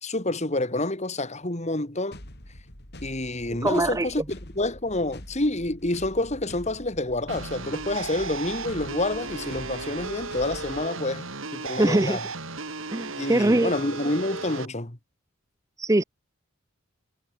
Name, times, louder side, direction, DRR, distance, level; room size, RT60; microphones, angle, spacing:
voice 1, 0.0-2.2 3.0-11.3 11.5-12.2 13.2-15.0, left 2 dB, 30° left, 2.3 m, -28 dB
sound 1, 2.1-10.9, left 1 dB, 50° left, 5.0 m, -45 dB
voice 2, 3.6-4.1 11.8-12.2 12.9-13.7 15.8-16.0, right 1 dB, 15° right, 0.6 m, -22 dB
sound 2, 7.3-14.7, right 4 dB, 65° right, 3.9 m, -35 dB
head